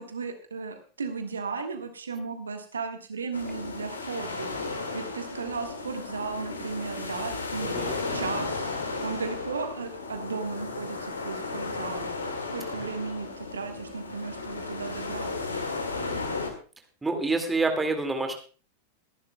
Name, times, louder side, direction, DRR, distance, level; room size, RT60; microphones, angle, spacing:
voice 1, 0.0-4.5 4.9-7.7 8.1-8.7 9.0-12.0 12.5-15.6, right 4 dB, 70° right, 6 dB, 1.5 m, -35 dB
sound 1, 3.3-16.5, left 3 dB, 75° left, 1.9 m, -34 dB
voice 2, 17.0-18.3, right 3 dB, 10° right, 5 dB, 2.1 m, -27 dB
22.5 x 11.0 x 2.3 m, 0.37 s
figure-of-eight pair, 90°, 0 cm